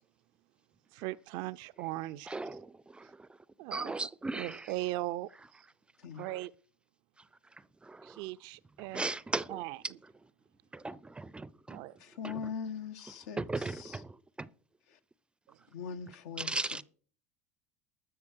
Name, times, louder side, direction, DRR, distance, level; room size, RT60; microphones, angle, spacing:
voice 1, 0.9-2.4 3.6-3.9 4.3-5.3 6.2-6.5 8.0-9.1 9.5-9.8 11.7-11.9, right 17 dB, 60° right, 0.5 m, -38 dB
voice 2, 2.3-3.3 3.7-4.7 6.2-6.4 7.8-8.2 8.9-9.9 10.7-11.8 12.2-12.4 13.4-14.5 16.4-16.8, right 3 dB, 10° right, 0.5 m, -38 dB
voice 3, 12.0-14.0 14.9-15.0 15.7-16.8, left 6 dB, 80° left, 1.3 m, -41 dB
13.5 x 6.9 x 6.3 m
supercardioid pair, 105°, 8 cm